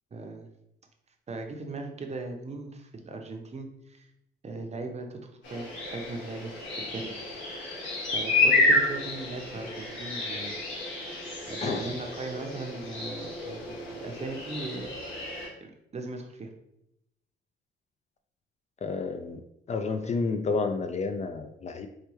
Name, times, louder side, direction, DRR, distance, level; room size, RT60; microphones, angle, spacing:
voice 1, 0.1-0.5 1.3-4.1 4.4-7.3 8.1-10.5 11.5-14.9 15.6-16.5, right 3 dB, 35° right, 4 dB, 0.6 m, -38 dB
sound 1, 5.4-15.5, left 2 dB, 75° left, 1.5 m, -30 dB
voice 2, 11.6-12.0 18.8-19.4 19.7-21.9, left 4 dB, 35° left, 7 dB, 0.4 m, -30 dB
4.8 x 2.2 x 3.0 m, 0.82 s
cardioid pair, 90°, 20 cm